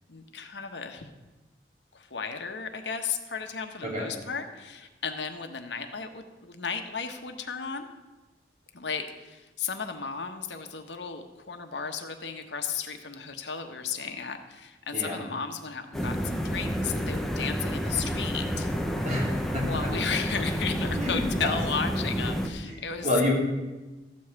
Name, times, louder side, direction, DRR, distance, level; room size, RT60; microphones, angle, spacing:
voice 1, 0.1-1.1 1.9-7.9 8.7-18.7 19.6-23.1, left 6 dB, 85° left, 6 dB, 1.1 m, -34 dB
voice 2, 14.9-15.2 19.0-19.9 21.0-21.5 22.6-23.3, left 1 dB, 40° right, -4 dB, 3.5 m, -29 dB
sound 1, 15.9-22.5, equal, ahead, 0.8 m, -30 dB
14.0 x 5.5 x 8.0 m, 1.2 s
head